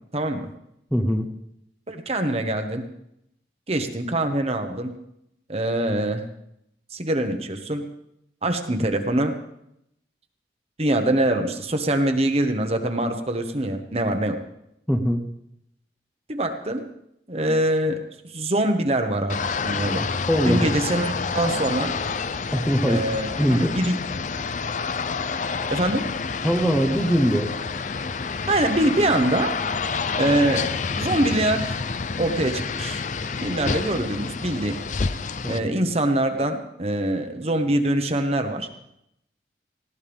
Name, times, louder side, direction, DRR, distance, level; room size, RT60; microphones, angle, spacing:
voice 1, 0.9-1.3 14.9-15.2 20.3-20.7 22.5-23.0 23.4-23.7 26.4-27.5 35.4-35.7, equal, 5° left, 3 dB, 1.1 m, -21 dB
voice 2, 1.9-2.8 3.7-4.9 5.5-6.2 6.9-7.9 8.4-9.3 10.8-14.4 16.3-16.8 17.3-18.0 18.3-20.1 20.4-21.9 22.8-24.0 25.7-26.0 28.5-29.5 30.1-30.6 31.0-31.8 32.2-33.0 33.4-34.8 35.5-38.7, right 1 dB, 35° right, 6 dB, 1.3 m, -24 dB
sound 1, 19.3-35.6, left 5 dB, 45° left, 0.5 m, -28 dB
19.0 x 17.0 x 3.6 m, 0.78 s
head